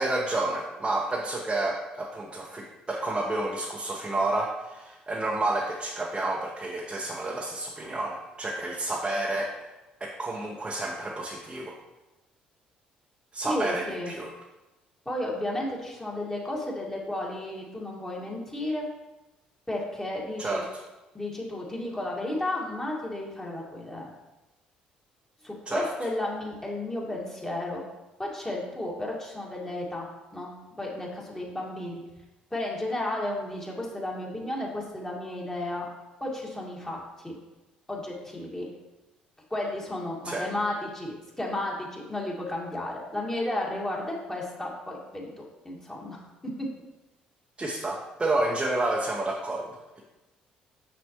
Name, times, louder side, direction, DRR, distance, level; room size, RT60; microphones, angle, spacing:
voice 1, 0.0-9.6 10.0-11.7 13.3-14.3 20.4-20.8 25.7-25.9 40.2-40.4 47.6-50.0, right 2 dB, 25° right, -2 dB, 0.9 m, -30 dB
voice 2, 13.4-14.1 15.1-18.9 19.7-20.6 21.1-24.1 25.4-27.8 28.2-30.1 30.3-32.0 32.5-35.9 36.2-37.4 37.9-38.7 39.5-46.7, left 1 dB, 15° left, -3 dB, 1.9 m, -33 dB
6.4 x 6.2 x 3.0 m, 1.1 s
hypercardioid pair, 50°, 4 cm